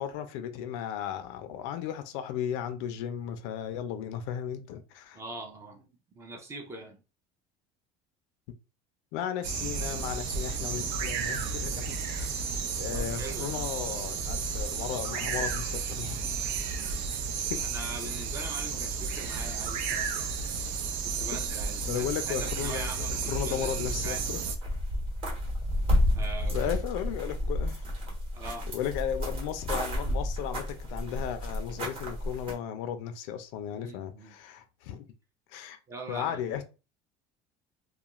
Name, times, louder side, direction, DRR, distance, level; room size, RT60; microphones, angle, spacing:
voice 1, 0.0-5.2 9.1-12.3 12.8-16.4 17.5-17.6 21.3-21.4 21.9-24.4 26.5-27.8 28.7-35.1 35.5-35.8 36.1-36.6, left 9 dB, 70° left, 0.5 m, -35 dB
voice 2, 5.1-5.9 6.1-7.0 12.9-13.6 17.7-20.3 21.0-24.2 26.2-26.7 28.3-28.7 33.7-34.3 35.9-36.5, right 2 dB, 20° right, 0.5 m, -42 dB
sound 1, 9.4-24.6, right 5 dB, 70° right, 0.5 m, -32 dB
sound 2, 23.1-24.2 24.5-32.5, left 1 dB, 40° right, 1.0 m, -31 dB
2.4 x 2.2 x 2.9 m
cardioid pair, 170°, 15 cm